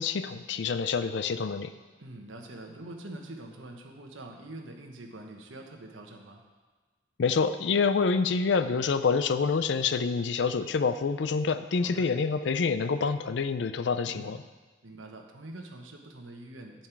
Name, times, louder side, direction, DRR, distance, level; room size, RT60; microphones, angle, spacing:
voice 1, 0.0-1.7 7.2-14.4, left 5 dB, 60° left, 11 dB, 0.4 m, -27 dB
voice 2, 2.0-6.4 11.8-12.1 14.0-14.3 14.8-16.9, right 1 dB, 80° right, 2 dB, 1.2 m, -44 dB
9.5 x 7.4 x 4.6 m, 1.3 s
head